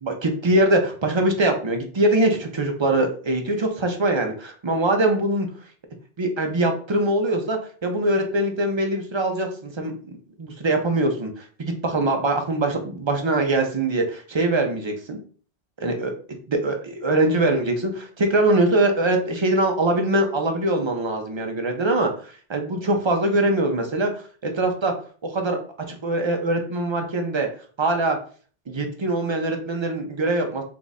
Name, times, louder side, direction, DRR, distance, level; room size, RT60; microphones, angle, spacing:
voice 1, 0.0-5.5 6.2-15.2 15.8-16.1 16.5-24.9 25.2-25.6 25.9-27.5 27.8-28.2 28.7-30.6, right 2 dB, 35° right, 3 dB, 0.5 m, -23 dB
3.7 x 2.4 x 4.0 m, 0.42 s
omnidirectional pair, 1.2 m